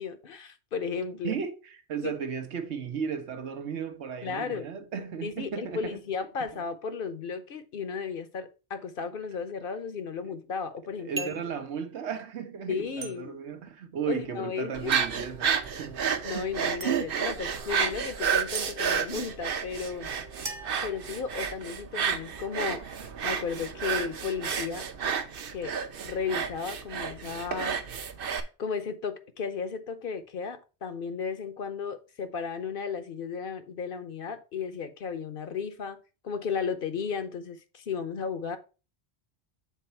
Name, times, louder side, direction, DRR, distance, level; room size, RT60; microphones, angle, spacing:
voice 1, 0.0-1.3 2.0-2.1 4.2-4.7 5.2-11.5 12.7-13.3 14.1-14.9 16.2-20.1 20.8-22.9 23.2-24.9 25.5-25.8 26.0-27.8 28.6-38.6, left 6 dB, 60° left, 0.9 m, -34 dB
voice 2, 1.2-6.0 11.0-16.0, right 7 dB, 85° right, 1.2 m, -35 dB
sound 1, 11.2-11.5 13.0-13.1 14.9-15.2 16.8-16.9 18.5-18.7 20.4-21.5, right 3 dB, 30° right, 0.7 m, -37 dB
sound 2, 14.7-28.4, right 7 dB, 60° right, 0.9 m, -31 dB
Wind instrument woodwind instrument, 15.0-20.7, right 4 dB, 90° left, 2.2 m, -51 dB
7.0 x 4.0 x 4.4 m
omnidirectional pair, 1.1 m